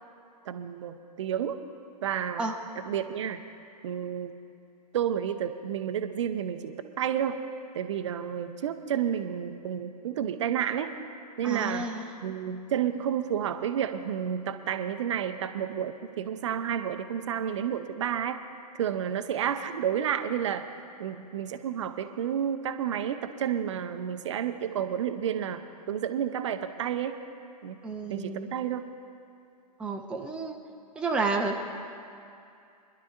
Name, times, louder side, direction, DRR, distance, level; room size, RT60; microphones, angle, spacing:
voice 1, 0.5-1.6 2.0-2.5 2.8-3.4 3.8-4.3 4.9-7.4 7.7-10.9 11.4-11.9 12.2-18.4 18.8-20.7 21.0-27.2 27.6-27.8 28.1-28.8, right 9 dB, 45° right, 9 dB, 0.7 m, -30 dB
voice 2, 11.4-12.1 27.8-28.5 29.8-30.6 31.0-31.5, right 3 dB, 5° right, 1 dB, 0.6 m, -30 dB
27.5 x 11.0 x 2.5 m, 2.6 s
figure-of-eight pair, 115°, 21 cm